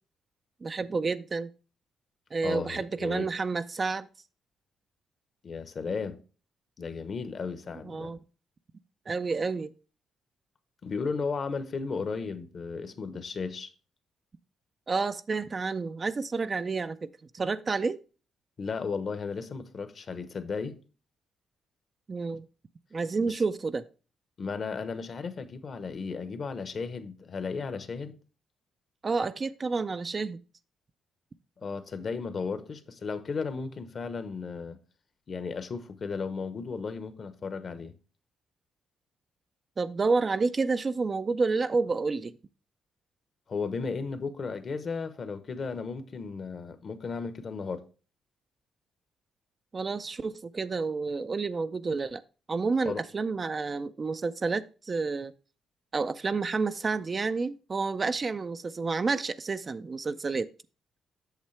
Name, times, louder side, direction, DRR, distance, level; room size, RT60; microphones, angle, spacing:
voice 1, 0.6-1.5 2.3-4.1 7.8-8.2 9.1-9.7 14.9-18.0 22.1-22.5 22.9-23.8 29.0-30.4 39.8-42.4 49.7-52.2 52.5-55.3 55.9-60.5, right 4 dB, 35° right, 0.4 m, -29 dB
voice 2, 2.4-3.3 5.4-6.2 6.8-8.1 10.8-13.7 18.6-20.7 23.2-23.4 24.4-28.1 31.6-34.8 35.3-37.9 43.5-47.8 52.8-53.0, left 5 dB, 45° left, 0.9 m, -35 dB
8.2 x 6.5 x 3.2 m
cardioid pair, 90°, 0 cm